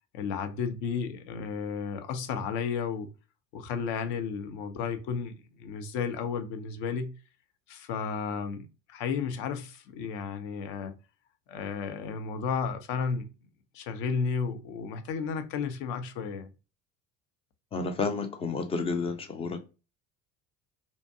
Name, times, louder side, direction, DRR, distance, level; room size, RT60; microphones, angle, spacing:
voice 1, 0.1-3.1 3.5-7.1 7.7-10.9 11.5-13.3 13.7-16.5, left 6 dB, 60° left, 0.7 m, -33 dB
voice 2, 17.7-19.6, left 4 dB, 15° left, 0.3 m, -30 dB
2.6 x 2.1 x 2.6 m
hypercardioid pair, 70°, 48 cm